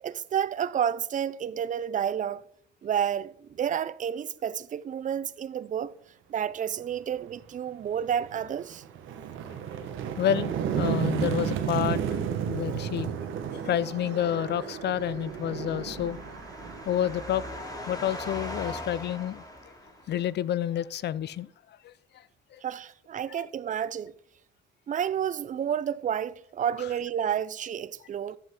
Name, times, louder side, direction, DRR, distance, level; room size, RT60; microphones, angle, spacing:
voice 1, 0.0-2.4 2.8-6.0 6.3-8.8 22.6-24.1 24.9-28.4, right 9 dB, 40° right, 0.5 m, -30 dB
sound 1, 7.3-7.4 7.9-18.6, right 8 dB, 85° right, 1.3 m, -33 dB
voice 2, 10.2-12.0 12.5-13.1 13.5-16.2 16.9-17.4 17.9-19.4 20.1-21.5 21.8-21.9 22.5-22.6, left 10 dB, 60° left, 0.5 m, -29 dB
sound 2, 14.2-20.4, left 1 dB, 20° left, 3.0 m, -41 dB
11.5 x 8.0 x 3.7 m
cardioid pair, 90°, 20 cm